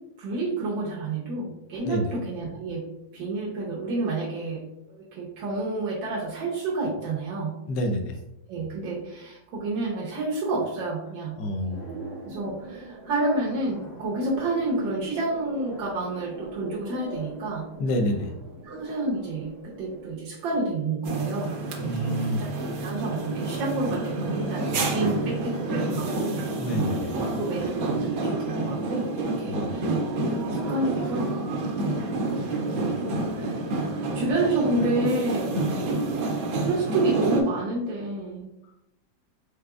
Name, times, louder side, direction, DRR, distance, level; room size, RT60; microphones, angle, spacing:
voice 1, 0.2-2.9 3.1-4.6 4.9-7.5 8.5-11.4 12.2-17.7 18.6-22.0 22.4-22.5 22.8-26.3 26.7-26.9 27.3-29.9 30.2-31.3 32.2-33.6 34.1-35.6 35.9-36.3 36.6-38.5, right 2 dB, 85° right, -5 dB, 1.6 m, -29 dB
voice 2, 7.7-8.2 11.4-12.0 17.8-18.3 21.8-22.4 26.6-27.1 29.4-29.9, equal, 70° left, 4 dB, 1.3 m, -28 dB
sound 1, 11.7-20.2, right 2 dB, 30° left, 0.8 m, -42 dB
sound 2, 21.0-37.4, right 2 dB, 65° right, 0.9 m, -28 dB
4.9 x 3.4 x 2.3 m, 0.86 s
omnidirectional pair, 2.0 m